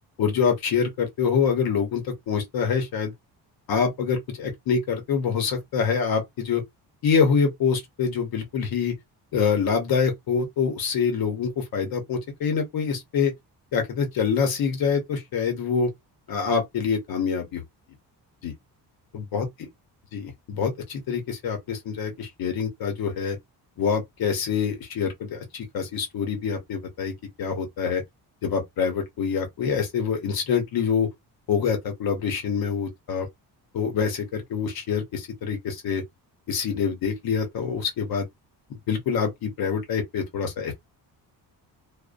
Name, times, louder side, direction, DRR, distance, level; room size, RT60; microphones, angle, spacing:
voice 1, 0.2-3.1 3.7-6.6 7.0-8.9 9.3-13.3 13.7-15.9 16.3-17.6 18.4-18.5 19.1-19.5 20.1-23.4 23.8-28.0 28.4-31.1 31.5-33.3 33.7-36.0 36.5-38.3 38.9-40.7, left 6 dB, 60° left, 0.9 m, -25 dB
2.5 x 2.1 x 2.5 m
cardioid pair, 155°, 40 cm